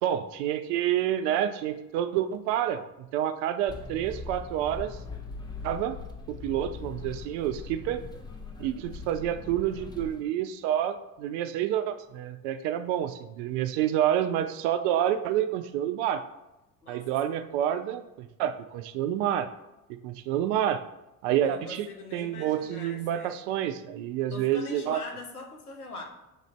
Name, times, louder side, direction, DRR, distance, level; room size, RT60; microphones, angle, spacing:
voice 1, 0.0-5.0 5.6-6.0 6.3-8.0 8.6-16.2 16.9-19.5 19.9-20.8 21.2-25.0, right 11 dB, 55° right, 10 dB, 0.5 m, -28 dB
sound 1, 3.7-10.2, left 4 dB, 10° left, 0.6 m, -41 dB
voice 2, 16.8-17.4 21.4-23.4 24.3-26.0, left 3 dB, 90° left, 2 dB, 0.7 m, -42 dB
6.6 x 2.5 x 3.1 m, 0.96 s
figure-of-eight pair, 60°, 44 cm